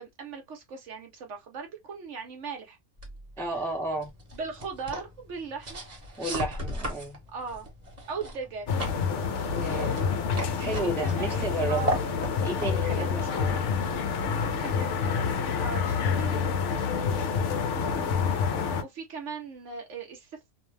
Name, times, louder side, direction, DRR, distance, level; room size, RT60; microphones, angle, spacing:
voice 1, 0.0-2.8 4.3-5.8 7.3-7.7 8.1-8.7 10.6-11.3 11.7-12.1 13.0-13.1 14.2-17.3 17.6-20.5, right 5 dB, 60° right, 1.0 m, -39 dB
sound 1, 3.0-14.1, equal, 35° right, 0.9 m, -38 dB
voice 2, 3.4-4.1 6.2-7.2 9.5-10.0 10.6-12.0 12.4-13.7 17.8-18.1, right 2 dB, 5° left, 0.5 m, -32 dB
sound 2, 8.7-18.8, left 6 dB, 65° left, 0.8 m, -28 dB
2.6 x 2.1 x 3.1 m
omnidirectional pair, 1.5 m